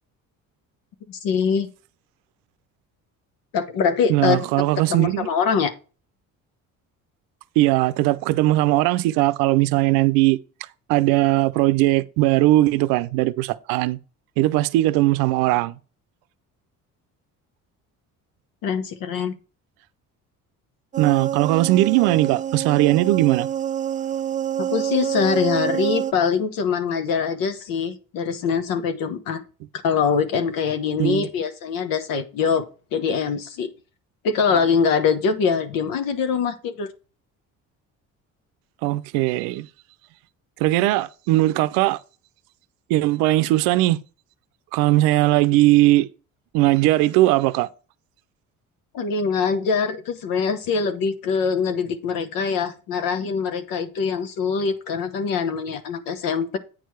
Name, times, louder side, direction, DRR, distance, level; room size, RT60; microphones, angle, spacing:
voice 1, 1.1-1.7 3.5-4.4 4.9-5.7 18.6-19.3 24.6-29.4 29.8-33.7 34.2-36.9 48.9-56.6, left 6 dB, 75° left, 1.0 m, -23 dB
voice 2, 4.1-5.3 7.6-10.4 10.9-14.0 14.4-15.7 21.0-23.5 31.0-31.3 38.8-39.7 40.6-42.0 42.9-44.0 44.7-46.1 46.5-47.7, right 17 dB, 90° right, 0.6 m, -19 dB
sound 1, 20.9-26.1, right 10 dB, 25° right, 0.4 m, -27 dB
8.9 x 4.6 x 4.6 m
supercardioid pair, 85°, 34 cm